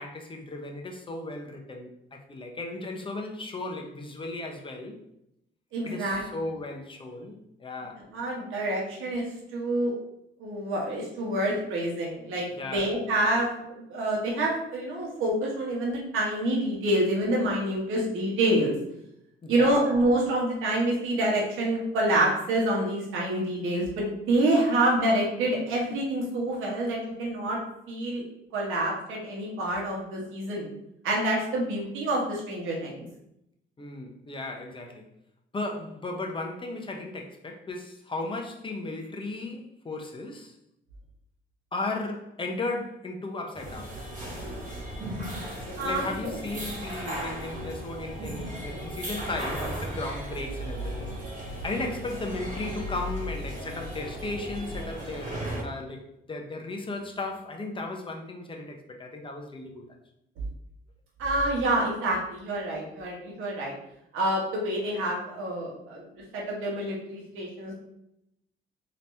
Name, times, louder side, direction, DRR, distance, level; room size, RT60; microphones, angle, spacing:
voice 1, 0.0-5.0 5.8-8.1 12.6-12.9 19.4-19.8 33.8-35.1 35.5-40.6 41.7-44.0 45.8-51.2 51.6-59.9, left 2 dB, 25° left, 0.8 m, -36 dB
voice 2, 5.7-6.2 8.1-9.2 9.5-9.9 10.4-12.5 12.7-18.7 19.5-27.6 27.9-28.2 28.5-30.7 31.0-33.0 45.8-46.4 61.2-63.8 64.1-66.1 66.3-67.7, right 1 dB, 90° right, 1.4 m, -27 dB
sound 1, 43.5-55.6, equal, 40° right, 1.5 m, -36 dB
3.9 x 2.9 x 3.3 m
cardioid pair, 90°, 20 cm